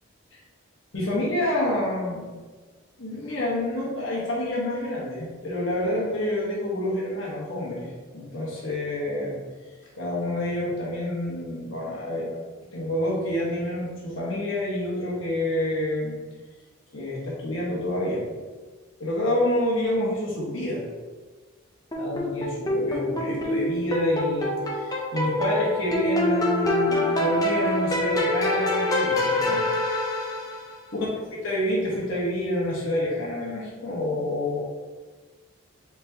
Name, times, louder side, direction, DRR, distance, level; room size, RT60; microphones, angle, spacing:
voice 1, 0.9-2.3 3.0-9.4 10.0-12.4 12.7-16.2 16.9-18.3 19.0-20.8 22.0-29.6 30.9-34.6, left 1 dB, 60° left, -6 dB, 1.2 m, -28 dB
sound 1, 21.9-30.8, left 1 dB, 15° left, 0.5 m, -25 dB
4.4 x 4.1 x 2.8 m, 1.4 s
head